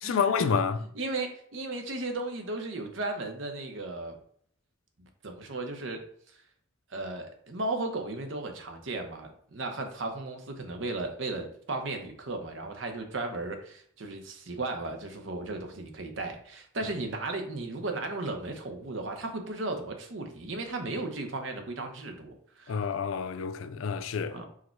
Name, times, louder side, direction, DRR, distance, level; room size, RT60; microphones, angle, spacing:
voice 1, 0.0-0.8 22.7-24.4, left 6 dB, 90° left, 0.4 m, -28 dB
voice 2, 0.9-4.2 5.2-6.0 6.9-22.9 24.3-24.4, right 2 dB, 70° right, 0.8 m, -35 dB
4.8 x 2.2 x 4.4 m
head